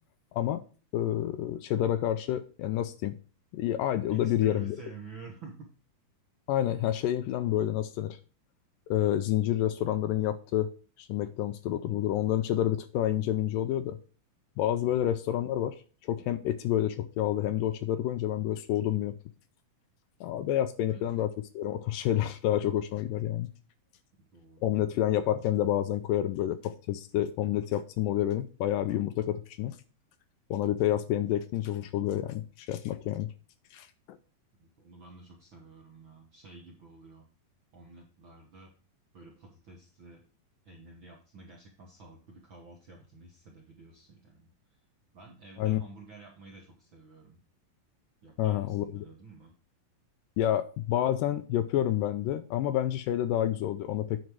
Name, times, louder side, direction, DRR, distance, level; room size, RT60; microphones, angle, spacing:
voice 1, 0.9-3.2 3.5-4.8 6.5-8.2 8.9-10.7 11.0-14.0 14.6-15.8 16.0-19.2 20.2-23.5 24.6-29.8 30.5-33.3 33.7-34.2 45.6-45.8 48.4-49.0 50.4-54.2, left 12 dB, 80° left, 11 dB, 2.0 m, -29 dB
voice 2, 4.1-5.7 14.8-15.1 20.8-21.0 24.2-25.1 34.6-37.3 37.7-38.7 39.1-40.2 40.6-44.8 45.1-47.4 48.2-49.5, right 4 dB, 65° right, -1 dB, 1.2 m, -50 dB
9.4 x 5.1 x 4.7 m, 0.37 s
omnidirectional pair, 4.1 m